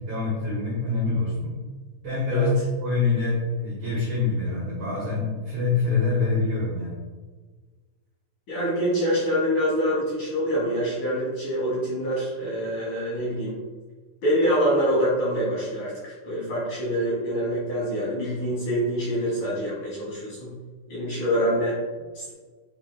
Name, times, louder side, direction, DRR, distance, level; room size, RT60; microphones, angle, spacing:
voice 1, 0.1-1.5 2.0-2.5 2.8-7.0, left 3 dB, 65° right, -7 dB, 1.8 m, -25 dB
voice 2, 8.5-13.6 14.2-20.5 20.9-21.8 22.1-22.3, equal, 50° left, -8 dB, 2.5 m, -25 dB
9.6 x 4.4 x 2.2 m, 1.4 s
omnidirectional pair, 5.6 m